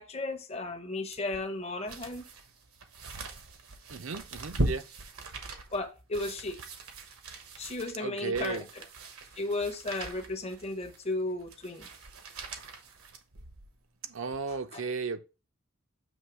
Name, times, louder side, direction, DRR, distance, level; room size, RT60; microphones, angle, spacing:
voice 1, 0.0-2.3 5.7-6.6 7.6-8.8 9.4-11.9 14.7-14.8, left 2 dB, 30° left, 0.7 m, -34 dB
sound 1, 1.1-13.8 14.3-14.4, right 2 dB, 75° right, 1.2 m, -40 dB
voice 2, 3.9-4.8 8.0-8.7 14.0-15.2, right 4 dB, 60° right, 0.6 m, -34 dB
7.1 x 3.2 x 4.6 m
head